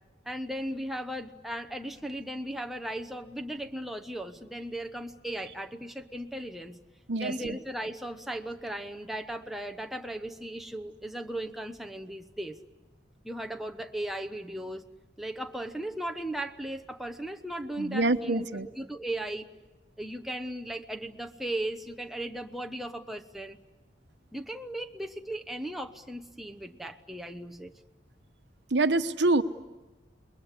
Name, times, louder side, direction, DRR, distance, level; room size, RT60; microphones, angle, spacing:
voice 1, 0.2-6.8 7.2-12.6 13.2-14.8 15.2-19.5 20.0-23.6 24.3-27.8, right 1 dB, ahead, 5 dB, 1.0 m, -37 dB
voice 2, 7.1-7.6 17.8-18.7 28.7-29.4, right 2 dB, 75° right, 9 dB, 1.1 m, -26 dB
28.5 x 21.5 x 8.3 m, 1.2 s
head